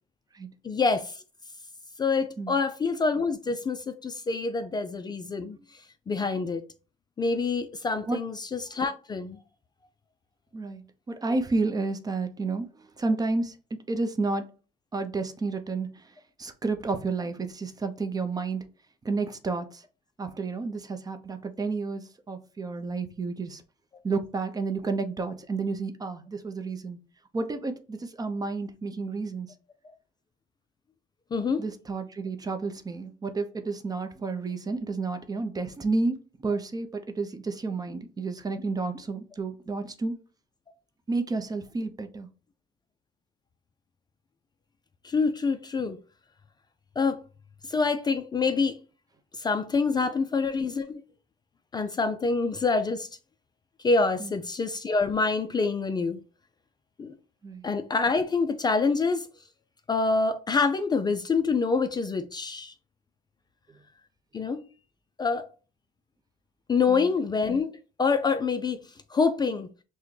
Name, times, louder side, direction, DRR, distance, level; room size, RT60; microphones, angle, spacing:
voice 1, 0.6-1.2 2.0-6.6 7.2-9.4 31.3-31.6 45.0-46.0 47.0-47.2 47.6-48.8 49.3-51.0 51.7-53.1 53.8-56.2 57.0-57.1 57.6-59.3 59.9-62.7 64.3-64.6 65.2-65.4 66.7-67.7 68.0-68.8 69.1-69.7, left 4 dB, 25° left, 0.4 m, -26 dB
voice 2, 10.5-14.5 14.9-16.1 16.4-18.7 19.0-19.8 20.2-23.6 24.0-27.0 27.3-29.5 31.6-40.1 41.1-42.3 54.2-54.3 57.4-57.6 66.9-67.1, right 3 dB, 20° right, 0.6 m, -31 dB
5.9 x 2.2 x 3.1 m
cardioid pair, 110°, 17 cm